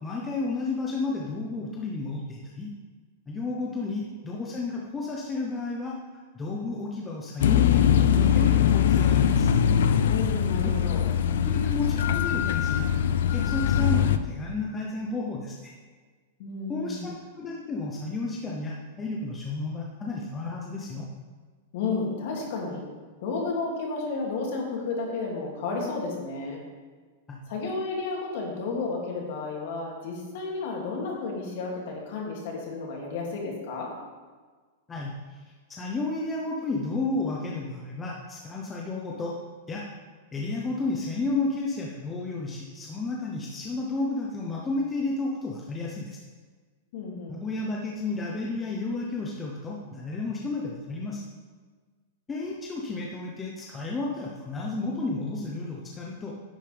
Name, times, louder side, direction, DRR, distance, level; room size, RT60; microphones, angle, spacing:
voice 1, 0.0-2.7 3.3-5.9 6.3-9.5 10.5-10.7 11.4-12.9 13.3-15.7 16.7-21.1 27.3-27.4 34.9-35.4 35.7-39.4 39.7-39.9 40.3-46.2 47.3-51.2 52.3-56.3, left 3 dB, 10° left, -3 dB, 0.8 m, -32 dB
sound 1, 7.4-14.2, left 8 dB, 70° left, 0.5 m, -22 dB
voice 2, 10.0-11.0 16.4-17.1 21.7-22.9 23.2-26.6 27.5-33.9 37.4-37.5 46.9-47.5, left 3 dB, 50° left, -2 dB, 2.6 m, -32 dB
10.5 x 8.9 x 3.5 m, 1.4 s
supercardioid pair, 170°, 0 cm